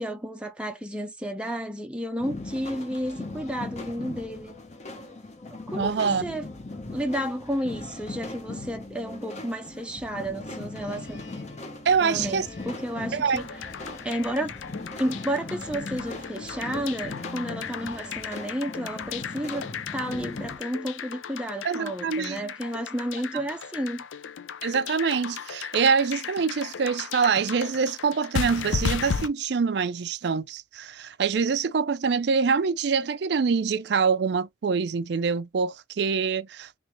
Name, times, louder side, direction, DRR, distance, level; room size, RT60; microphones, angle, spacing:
voice 1, 0.0-4.6 5.7-6.5 6.9-11.2 12.0-13.5 14.0-14.5 15.0-24.0, equal, 5° right, 0.5 m, -32 dB
sound 1, 2.2-20.6, left 2 dB, 35° left, 0.9 m, -39 dB
voice 2, 5.8-6.2 11.8-12.5 13.1-13.4 21.6-22.5 24.6-36.8, right 5 dB, 60° right, 0.4 m, -25 dB
sound 2, 10.3-20.2, left 2 dB, 65° left, 2.4 m, -52 dB
sound 3, 13.3-29.3, left 6 dB, 85° left, 0.5 m, -35 dB
3.8 x 3.1 x 3.0 m
head